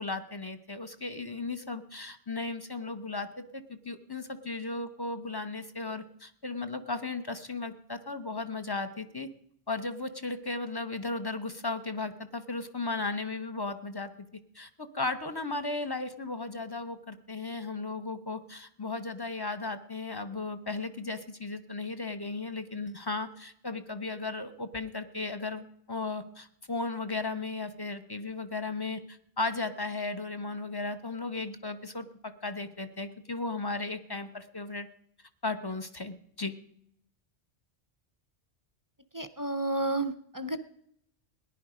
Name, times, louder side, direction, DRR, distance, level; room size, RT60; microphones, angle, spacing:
voice 1, 0.0-9.3 9.7-14.1 14.5-34.9 35.4-36.5, left 3 dB, 25° left, 9 dB, 0.8 m, -35 dB
voice 2, 39.1-40.6, right 2 dB, 25° right, 11 dB, 0.5 m, -31 dB
18.0 x 10.5 x 5.0 m, 0.70 s
omnidirectional pair, 1.1 m